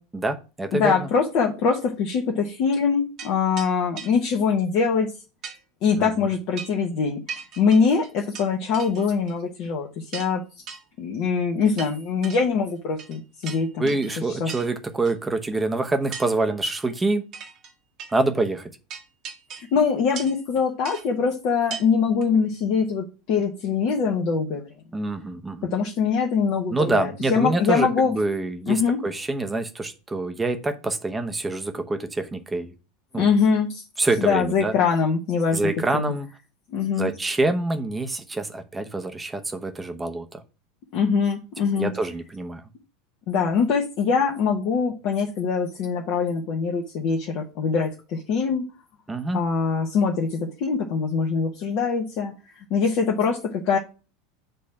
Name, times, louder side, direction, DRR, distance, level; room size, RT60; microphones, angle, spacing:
voice 1, 0.0-1.1 5.9-6.3 13.8-17.3 18.1-18.7 24.9-25.7 26.7-32.7 33.1-33.3 34.0-34.7 35.5-36.3 37.0-40.4 41.8-42.6 49.1-49.4, right 2 dB, 15° right, 7 dB, 0.9 m, -26 dB
voice 2, 0.7-5.1 5.8-7.2 7.6-10.4 11.0-13.9 14.4-14.5 19.5-24.7 25.6-28.2 28.7-29.0 33.2-33.8 34.2-36.1 36.7-37.1 40.9-41.9 43.3-48.7 49.3-52.3 52.7-53.8, left 5 dB, 50° left, 0 dB, 1.1 m, -23 dB
sound 1, 3.2-3.3 3.6-3.7 4.0-4.1 5.4-5.6 6.6-6.8 7.3-8.5 8.7-9.3 9.6-9.7 10.1-10.3 10.7-10.8 11.8-12.4 13.0-13.2 13.4-14.1 14.5-14.7 15.0-15.1 16.1-16.3 16.7-16.9 17.3-17.7 18.0-18.1 18.9-19.7 20.1-20.4 20.8-21.0 21.7-21.9 22.2-22.3, right 6 dB, 45° right, 1.5 m, -38 dB
7.7 x 3.1 x 5.9 m, 0.32 s
figure-of-eight pair, 80°, 0 cm